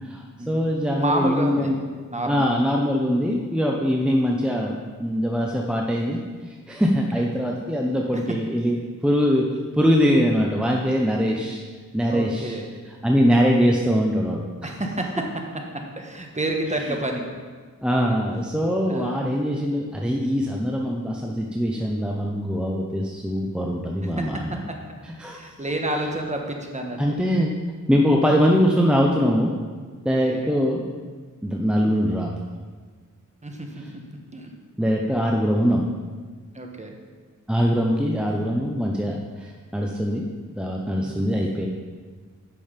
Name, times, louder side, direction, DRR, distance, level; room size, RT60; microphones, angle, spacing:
voice 1, 0.0-1.7 2.3-6.2 6.5-8.8 9.0-9.5 9.7-11.6 11.9-12.6 13.0-14.7 17.8-24.6 25.0-25.4 27.0-27.5 27.9-29.5 29.8-30.8 31.4-32.3 34.8-35.8 37.5-40.3 40.6-41.7, equal, 5° right, 0 dB, 0.7 m, -22 dB
voice 2, 0.9-1.7 2.1-2.5 7.1-7.3 8.1-8.4 12.1-12.7 14.6-15.1 16.0-17.2 18.9-19.2 24.0-24.8 25.2-27.0 30.1-30.5 33.4-33.8 34.3-34.5 36.5-36.9 41.0-41.4, right 1 dB, 20° right, 2 dB, 1.3 m, -29 dB
9.0 x 6.2 x 5.1 m, 1.5 s
wide cardioid pair, 90°, 31 cm